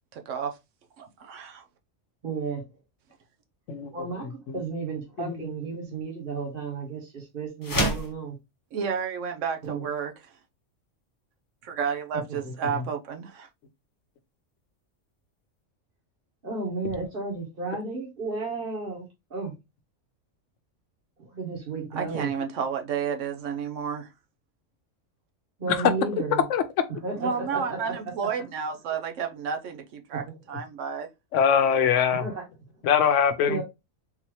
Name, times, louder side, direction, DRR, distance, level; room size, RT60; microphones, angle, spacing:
voice 1, 0.1-0.6 1.0-1.6 8.7-10.1 11.6-13.5 21.9-24.1 27.2-31.1, right 6 dB, 75° right, 1.0 m, -31 dB
voice 2, 2.2-2.6 3.9-8.4 9.6-9.8 12.1-12.5 16.4-19.5 21.2-22.3 25.6-26.4 27.0-28.0 30.1-30.2 32.1-32.4 33.5-33.6, right 4 dB, 45° right, 1.5 m, -33 dB
sound 1, 7.6-8.2, equal, 20° left, 0.6 m, -26 dB
voice 3, 26.3-26.6 27.6-27.7 31.3-32.3 32.8-33.6, left 8 dB, 75° left, 0.9 m, -22 dB
3.8 x 2.8 x 3.0 m
omnidirectional pair, 1.3 m